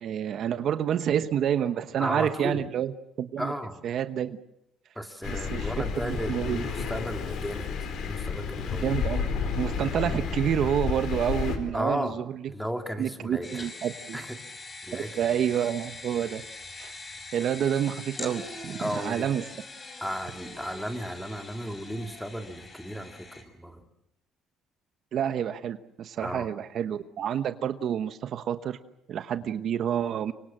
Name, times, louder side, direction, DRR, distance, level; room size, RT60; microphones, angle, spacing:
voice 1, 0.0-2.9 3.2-3.5 3.8-4.4 5.3-5.7 6.0-6.6 8.8-9.3 9.6-12.4 13.0-14.2 14.9-16.4 16.8-16.9 17.3-19.4 25.1-28.8 29.1-30.3, right 9 dB, 60° right, 10 dB, 1.1 m, -28 dB
voice 2, 2.0-2.6 3.4-3.8 4.9-8.9 11.7-12.2 12.5-13.7 14.1-14.4 14.8-15.2 18.8-19.3 20.0-23.9 26.2-26.5, equal, ahead, 5 dB, 2.7 m, -34 dB
Thunder, 5.2-11.6, left 6 dB, 70° left, 4.3 m, -31 dB
sound 1, 13.4-23.4, left 2 dB, 30° left, 5.6 m, -43 dB
25.0 x 24.5 x 7.6 m, 0.83 s
cardioid pair, 100°, 0 cm